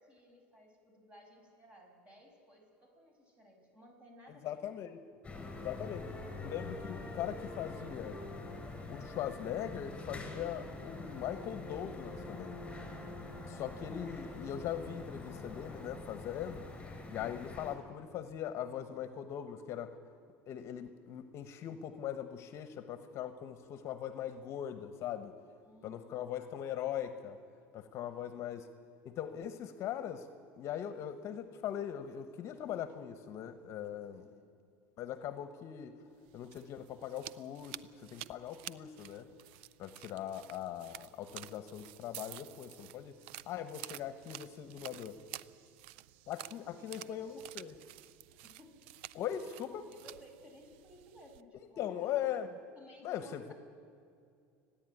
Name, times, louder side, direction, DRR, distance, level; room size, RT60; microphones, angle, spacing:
voice 1, 0.0-4.8 25.6-26.4 28.0-28.4 34.1-34.5 46.5-47.6 48.3-48.8 49.9-52.1 52.7-53.5, equal, 20° right, 2 dB, 6.1 m, -58 dB
voice 2, 4.3-5.0 5.6-6.1 6.4-8.2 8.9-12.6 13.5-16.6 17.1-20.0 20.5-25.3 25.8-27.4 27.7-28.7 29.0-30.3 30.6-34.2 35.0-35.9 36.3-39.3 39.8-43.1 43.5-45.2 46.3-47.7 49.1-49.8 51.8-52.5 53.0-53.5, left 10 dB, 50° left, 10 dB, 1.2 m, -40 dB
sound 1, 5.2-17.7, left 2 dB, 15° left, 4.4 m, -45 dB
sound 2, 36.2-51.4, right 15 dB, 80° right, 0.5 m, -51 dB
29.5 x 10.5 x 9.3 m, 2.3 s
supercardioid pair, 110°, 6 cm